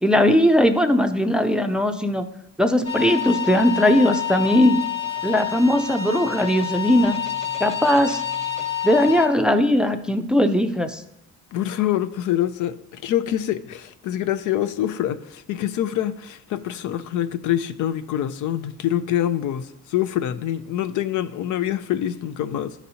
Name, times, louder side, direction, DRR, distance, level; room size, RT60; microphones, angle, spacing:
voice 1, 0.0-2.2 2.6-4.8 5.2-7.2 7.6-8.2 8.8-11.0, left 1 dB, 5° right, 0.4 m, -19 dB
sound 1, 2.8-9.3, left 9 dB, 20° left, 1.0 m, -28 dB
voice 2, 11.5-22.7, left 11 dB, 75° left, 0.5 m, -25 dB
11.5 x 4.1 x 2.8 m
cardioid pair, 90°, 30 cm